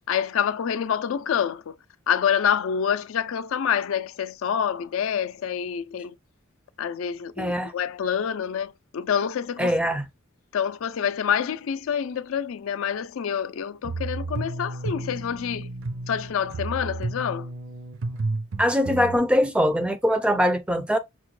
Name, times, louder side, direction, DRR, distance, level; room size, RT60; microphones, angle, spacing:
voice 1, 0.1-1.8 2.1-6.1 6.8-9.8 10.5-15.7 16.1-17.5, left 8 dB, 70° left, 0.4 m, -27 dB
voice 2, 7.4-7.7 9.6-10.0 18.6-21.0, equal, 5° right, 0.3 m, -22 dB
sound 1, 13.8-19.2, right 3 dB, 65° right, 0.6 m, -32 dB
5.8 x 2.1 x 3.0 m
head